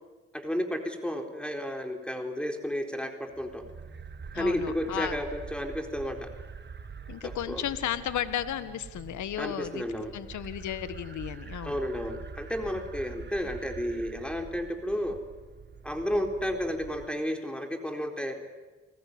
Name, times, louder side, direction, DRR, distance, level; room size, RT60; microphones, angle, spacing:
voice 1, 0.3-3.6 4.3-6.3 7.2-7.6 9.4-10.1 11.6-15.2 15.8-18.4, equal, 5° left, 4 dB, 4.1 m, -32 dB
sound 1, 3.3-17.1, right 5 dB, 35° right, 1.6 m, -45 dB
voice 2, 4.3-5.2 7.1-9.8 10.1-11.8, left 11 dB, 70° left, 12 dB, 1.6 m, -34 dB
30.0 x 20.0 x 9.6 m, 1.3 s
supercardioid pair, 65°, 30 cm